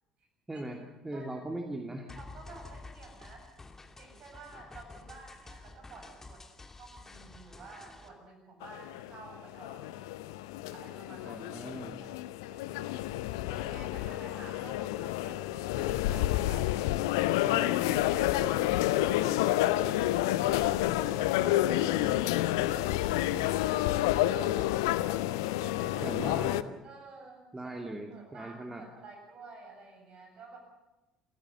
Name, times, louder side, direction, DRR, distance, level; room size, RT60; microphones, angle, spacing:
voice 1, 0.5-0.8 1.0-2.1 11.2-12.0 26.0-26.7 27.5-28.8, right 1 dB, 15° right, 2 dB, 2.5 m, -39 dB
sound 1, 2.1-8.1, left 3 dB, 20° left, 2.6 m, -50 dB
voice 2, 2.2-3.5 4.0-6.4 6.8-10.0 10.7-11.4 12.0-12.1 12.4-13.0 13.5-16.7 17.4-18.8 19.0-19.4 20.1-22.3 23.1-23.9 24.2-26.1 26.8-27.5 27.9-30.6, right 3 dB, 45° right, 3 dB, 7.9 m, -51 dB
sound 2, 8.6-26.6, left 15 dB, 65° left, 0.7 m, -29 dB
28.5 x 15.5 x 7.1 m, 1.0 s
figure-of-eight pair, 60°, 2 cm